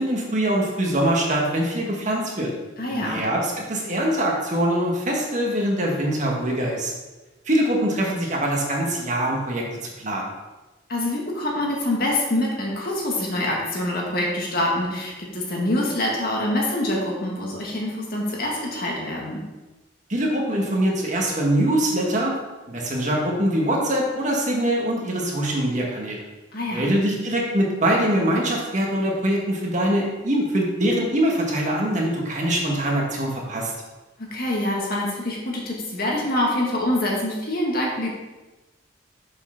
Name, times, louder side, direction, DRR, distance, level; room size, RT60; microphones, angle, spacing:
voice 1, 0.0-2.5 2.9-6.9 7.5-10.3 20.1-22.3 22.7-26.2 26.7-33.7, right 1 dB, 40° right, -1 dB, 1.7 m, -23 dB
voice 2, 2.8-3.2 10.9-19.4 26.5-26.9 34.2-38.1, left 1 dB, 50° left, -2 dB, 1.9 m, -25 dB
6.6 x 5.8 x 5.9 m, 1.1 s
head